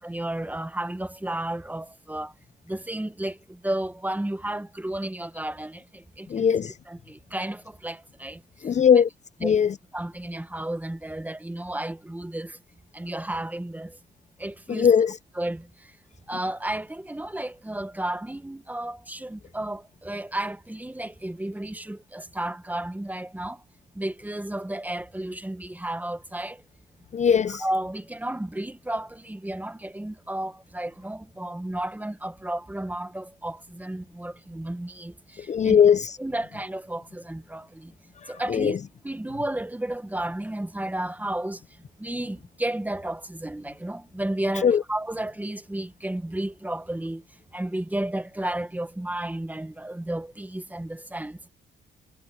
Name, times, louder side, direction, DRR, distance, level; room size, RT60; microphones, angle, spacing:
voice 1, 0.0-2.3 2.7-6.5 6.9-8.4 9.4-9.6 9.9-12.6 12.9-14.0 14.4-14.9 15.4-15.7 16.3-23.6 24.0-26.6 27.5-35.8 36.2-37.9 38.3-38.8 39.0-41.6 42.0-47.2 47.5-51.4, right 1 dB, 10° right, 1.2 m, -32 dB
voice 2, 6.3-6.7 8.6-9.1 9.4-9.7 14.7-15.2 27.1-27.6 35.5-36.2 38.2-38.8 44.6-44.8, left 7 dB, 35° left, 0.5 m, -20 dB
cardioid pair, 90°, 20 cm